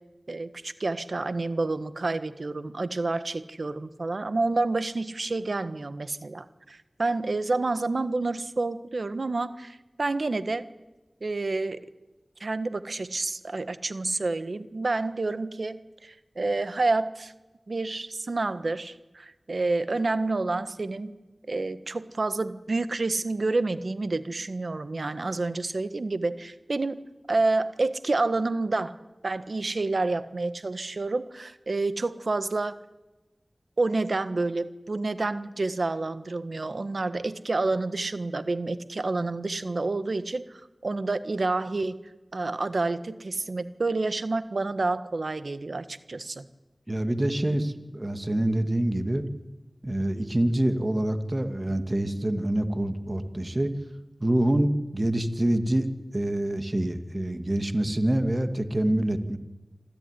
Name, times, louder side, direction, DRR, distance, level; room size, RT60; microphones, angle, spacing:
voice 1, 0.3-10.6 11.2-11.8 12.4-17.3 17.7-21.1 21.5-27.0 27.3-28.9 29.2-32.8 33.8-42.0 42.3-46.4, right 3 dB, 70° right, 12 dB, 1.5 m, -29 dB
voice 2, 46.9-49.2 49.8-53.7 54.2-55.9 56.1-59.4, right 1 dB, 30° right, 8 dB, 2.2 m, -26 dB
27.0 x 15.0 x 10.0 m, 1.1 s
wide cardioid pair, 50°, 0 cm